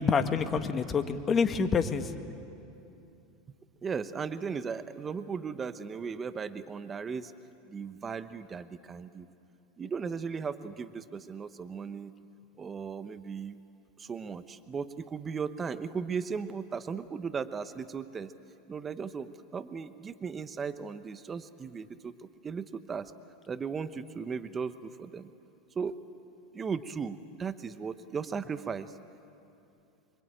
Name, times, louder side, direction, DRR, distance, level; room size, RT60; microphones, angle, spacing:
voice 1, 0.0-2.1, left 5 dB, 30° left, 8 dB, 1.7 m, -27 dB
voice 2, 3.8-7.3 7.7-9.3 9.8-12.1 12.6-13.6 14.0-18.3 18.7-23.1 23.5-25.3 25.7-26.0 26.5-29.0, right 5 dB, 25° right, 12 dB, 1.0 m, -37 dB
26.0 x 23.0 x 9.0 m, 2.7 s
hypercardioid pair, 95°, 0 cm